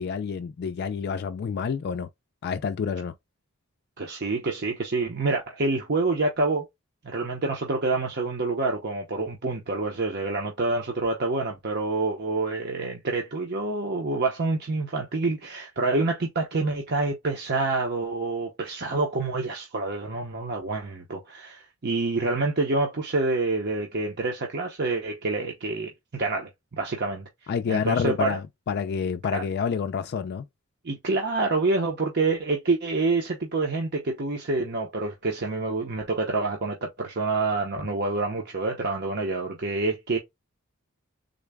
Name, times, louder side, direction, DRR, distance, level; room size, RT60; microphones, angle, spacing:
voice 1, 0.0-2.1 2.4-3.1 27.5-30.4, left 6 dB, 50° left, 0.3 m, -28 dB
voice 2, 4.0-6.7 7.0-26.5 26.8-27.3 27.7-28.4 29.3-29.4 30.8-40.2, right 3 dB, 50° right, 0.8 m, -27 dB
3.8 x 2.1 x 3.4 m
head